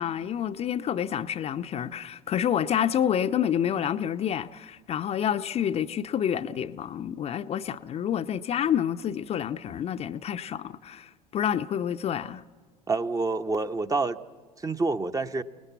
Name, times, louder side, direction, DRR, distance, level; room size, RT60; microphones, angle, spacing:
voice 1, 0.0-12.4, left 9 dB, 35° left, 0.7 m, -28 dB
voice 2, 12.9-14.2 14.6-15.4, right 3 dB, 20° right, 0.9 m, -27 dB
29.5 x 19.0 x 8.1 m
figure-of-eight pair, 65°, 19 cm